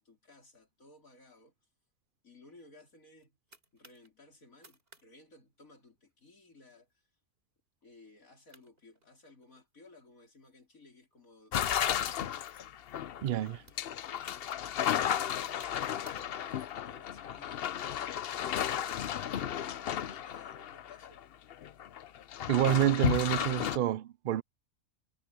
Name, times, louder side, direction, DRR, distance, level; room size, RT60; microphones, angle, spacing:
voice 1, 0.0-1.5 2.2-7.1 7.8-12.3 13.3-14.4 14.9-17.9 18.5-21.2, left 2 dB, 75° left, 5.1 m, -57 dB
sound 1, 2.9-4.1 4.5-5.1 5.3-5.4 5.8-6.1 6.7-6.9 7.4-7.5 8.2-8.3 8.5-9.7 10.3-12.2 12.9-13.1 13.4-16.6, right 2 dB, 45° right, 3.8 m, -62 dB
sound 2, 11.5-21.2 21.5-23.8, left 10 dB, 55° left, 0.7 m, -34 dB
voice 2, 13.2-13.6 22.5-24.4, right 12 dB, 65° right, 0.5 m, -28 dB
omnidirectional pair, 1.4 m